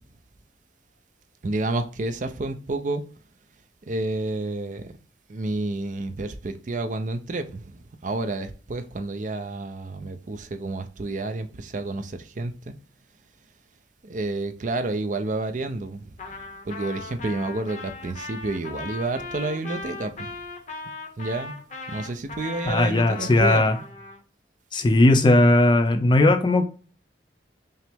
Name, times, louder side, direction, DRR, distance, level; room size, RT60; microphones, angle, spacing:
voice 1, 1.4-3.0 3.9-4.9 5.3-12.7 14.0-16.1 16.7-20.4 21.2-21.6 21.9-23.6, right 2 dB, 45° right, 0.5 m, -30 dB
Trumpet, 16.2-24.2, left 3 dB, 40° left, 0.8 m, -38 dB
voice 2, 22.6-23.8 24.7-26.7, left 2 dB, 25° left, 0.4 m, -18 dB
5.4 x 2.0 x 3.5 m
head